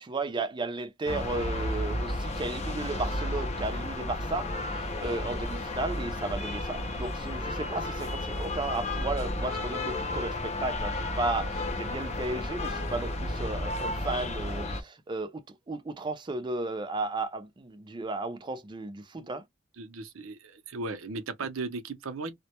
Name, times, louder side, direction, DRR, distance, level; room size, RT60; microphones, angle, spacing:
voice 1, 0.0-19.4, right 2 dB, 20° right, 0.4 m, -34 dB
sound 1, 1.1-14.8, left 1 dB, 30° left, 0.5 m, -33 dB
voice 2, 19.8-22.3, right 3 dB, 75° right, 0.5 m, -37 dB
2.1 x 2.1 x 2.8 m
head